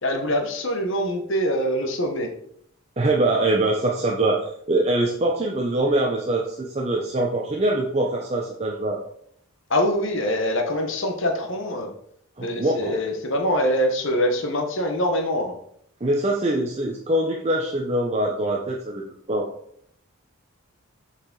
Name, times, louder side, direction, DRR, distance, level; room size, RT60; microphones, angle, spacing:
voice 1, 0.0-2.3 9.7-11.9 12.4-15.6, equal, 55° left, 4 dB, 1.1 m, -24 dB
voice 2, 3.0-9.1 12.4-13.0 16.0-19.0 19.3-19.5, right 1 dB, 30° right, -1 dB, 0.7 m, -23 dB
6.9 x 4.8 x 3.9 m, 0.68 s
head